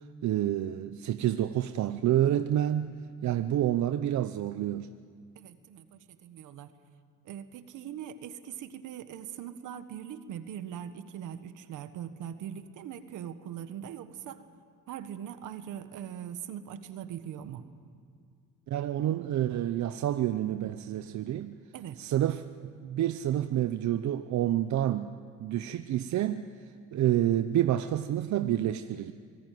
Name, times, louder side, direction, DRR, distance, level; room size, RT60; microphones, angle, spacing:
voice 1, 0.0-4.9 18.7-21.6 22.0-22.5 22.8-25.1 25.4-26.5 26.9-29.1, right 12 dB, 70° right, 10 dB, 0.8 m, -28 dB
voice 2, 5.3-6.7 7.2-14.4 14.9-17.6 21.7-22.0, right 9 dB, 85° right, 10 dB, 1.4 m, -41 dB
26.0 x 19.0 x 9.3 m, 2.2 s
cardioid pair, 90°, 30 cm